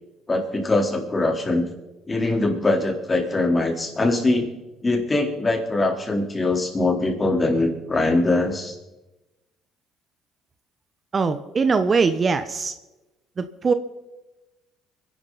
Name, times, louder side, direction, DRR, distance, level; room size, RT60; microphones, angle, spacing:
voice 1, 0.3-1.7 2.1-4.6 4.8-8.8, left 2 dB, 25° left, 2 dB, 3.8 m, -22 dB
voice 2, 11.1-12.7 13.4-13.7, right 4 dB, 35° right, 10 dB, 1.0 m, -21 dB
25.0 x 11.0 x 4.1 m, 1.0 s
supercardioid pair, 70°, 0 cm